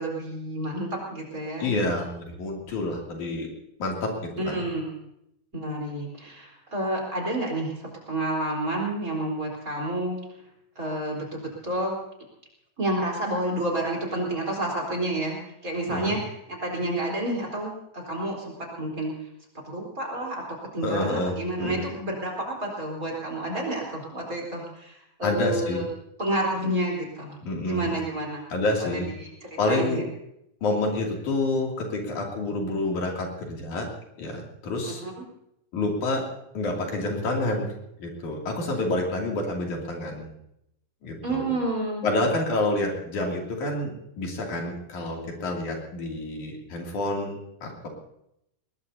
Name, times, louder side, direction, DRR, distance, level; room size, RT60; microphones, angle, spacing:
voice 1, 0.0-1.7 4.4-5.0 5.5-10.2 10.8-12.0 12.8-19.1 19.6-20.4 20.7-25.9 26.2-27.3 27.6-28.4 28.8-30.0 34.8-35.1 41.2-42.0, right 1 dB, 25° right, -1 dB, 4.3 m, -30 dB
voice 2, 1.6-3.5 3.8-4.6 15.9-16.2 20.8-21.8 25.2-25.8 27.4-28.0 28.5-29.1 29.6-30.0 30.6-33.9 34.2-35.0 35.7-36.3 36.5-37.7 38.0-40.3 41.0-41.5 42.0-47.9, left 2 dB, 75° left, -1 dB, 4.2 m, -28 dB
21.5 x 20.5 x 2.8 m, 0.79 s
omnidirectional pair, 3.4 m